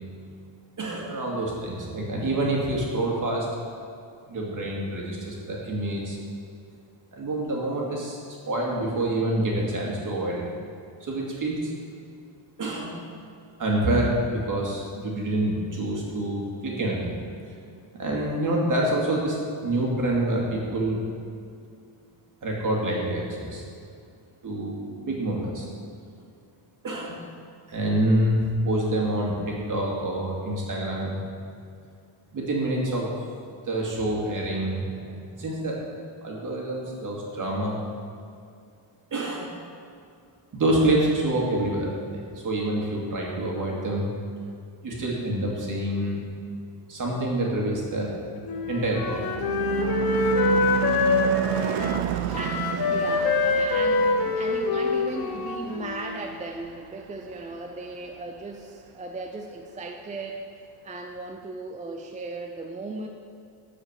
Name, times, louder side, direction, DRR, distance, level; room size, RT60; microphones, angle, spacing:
voice 1, 0.8-3.5 4.3-6.2 7.1-8.2 8.5-10.4 11.0-11.7 12.6-13.0 13.6-17.1 17.9-19.4 19.6-21.1 22.4-23.6 24.4-25.7 26.8-27.2 27.7-31.2 32.3-33.1 33.6-35.8 36.2-37.7 39.1-39.5 40.5-44.1 44.8-46.2 46.9-48.1 48.7-49.2, right 1 dB, 40° right, -2 dB, 2.3 m, -27 dB
Car passing by / Truck / Engine, 48.3-57.0, right 11 dB, 85° right, 0.7 m, -31 dB
Wind instrument woodwind instrument, 48.4-56.2, left 4 dB, 45° left, 1.0 m, -25 dB
voice 2, 52.3-60.5 60.8-63.1, right 3 dB, 15° right, 3 dB, 0.3 m, -37 dB
13.0 x 5.1 x 8.0 m, 2.4 s
cardioid pair, 180°, 50 cm